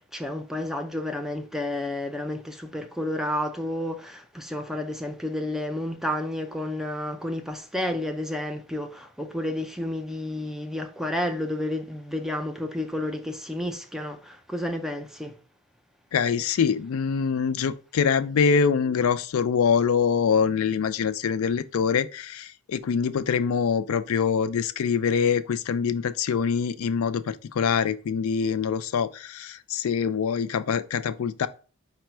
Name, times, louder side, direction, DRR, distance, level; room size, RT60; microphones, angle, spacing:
voice 1, 0.1-15.3, left 1 dB, ahead, 0.4 m, -31 dB
voice 2, 16.1-31.5, left 6 dB, 85° left, 0.4 m, -24 dB
5.0 x 2.2 x 4.4 m
head